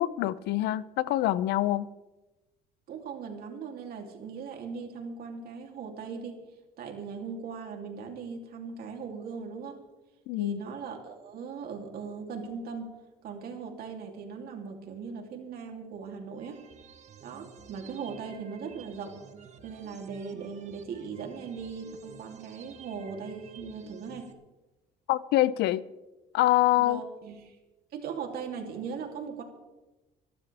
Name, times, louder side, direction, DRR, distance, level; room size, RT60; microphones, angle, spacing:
voice 1, 0.0-1.9 10.3-10.6 25.1-25.8 26.3-27.0, left 15 dB, 80° left, 0.6 m, -25 dB
voice 2, 2.9-6.4 6.8-9.8 10.4-12.9 13.2-16.6 17.2-19.2 19.6-24.3 26.8-27.6 27.9-29.4, right 5 dB, 65° right, 3.1 m, -39 dB
sound 1, 16.3-24.3, right 7 dB, 45° right, 1.4 m, -52 dB
26.0 x 12.0 x 3.5 m
cardioid pair, 110°, 17 cm